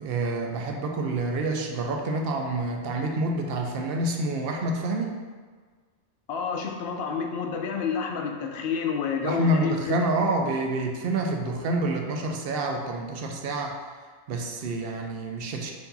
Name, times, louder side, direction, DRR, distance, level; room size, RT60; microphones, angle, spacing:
voice 1, 0.0-5.2 9.2-13.7 14.3-15.7, right 2 dB, 65° right, 2 dB, 0.7 m, -28 dB
voice 2, 6.3-10.0, left 6 dB, 70° left, 3 dB, 0.8 m, -29 dB
4.6 x 2.7 x 4.0 m, 1.5 s
omnidirectional pair, 1.1 m